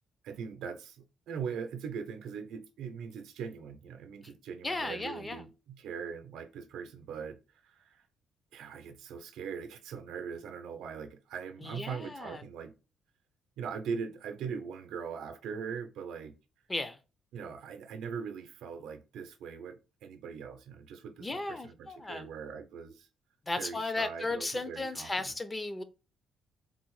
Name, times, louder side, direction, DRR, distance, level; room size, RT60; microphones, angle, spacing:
voice 1, 0.2-7.4 7.6-8.1 8.5-12.7 13.6-16.3 17.3-23.1 23.6-25.3, right 6 dB, 85° right, 0.6 m, -41 dB
voice 2, 4.6-5.4 11.6-12.4 16.7-17.0 21.2-22.3 23.5-25.8, left 2 dB, 20° left, 0.5 m, -35 dB
3.9 x 2.0 x 3.0 m
cardioid pair, 90°, 0 cm